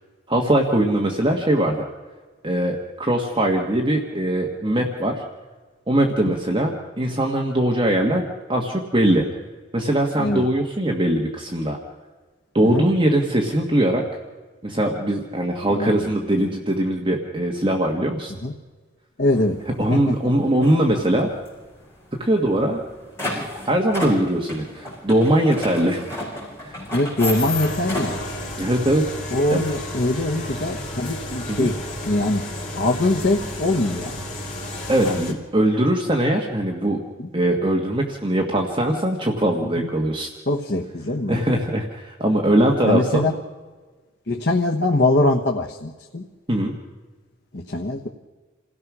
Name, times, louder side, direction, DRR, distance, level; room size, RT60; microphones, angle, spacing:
voice 1, 0.3-1.8 2.4-5.2 5.9-9.2 9.7-11.8 12.5-14.0 14.6-18.3 19.8-21.3 22.2-22.8 23.3-26.0 26.6-26.8 28.6-29.0 29.5-29.6 31.5-31.7 34.9-37.0 37.3-40.3 41.3-43.3 46.5-46.7, right 1 dB, 25° right, 0 dB, 1.6 m, -21 dB
voice 2, 15.7-16.0 18.4-18.5 19.2-19.6 19.9-20.2 26.9-28.2 29.3-32.5 32.7-34.3 35.0-35.2 37.2-37.3 39.6-39.9 40.5-41.4 42.8-43.3 44.3-46.3 47.5-48.1, left 2 dB, 55° left, 1 dB, 1.2 m, -22 dB
sound 1, 19.3-19.5 19.9-20.2 20.5-21.5 21.8-21.9 22.1-22.2 22.6-28.3, left 1 dB, 15° left, 7.8 m, -31 dB
sound 2, 27.3-35.3, left 1 dB, 40° left, 3.6 m, -32 dB
28.5 x 16.5 x 6.2 m, 1.3 s
head